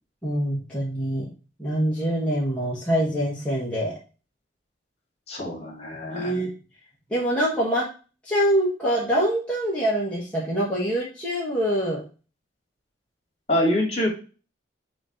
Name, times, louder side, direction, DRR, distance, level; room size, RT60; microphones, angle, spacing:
voice 1, 0.2-1.3 1.6-3.9 6.1-6.5 7.1-7.9 8.2-12.0, equal, 5° left, -6 dB, 1.5 m, -24 dB
voice 2, 5.3-6.4 13.5-14.1, left 1 dB, 35° left, 0 dB, 2.6 m, -25 dB
6.4 x 3.0 x 5.1 m, 0.34 s
head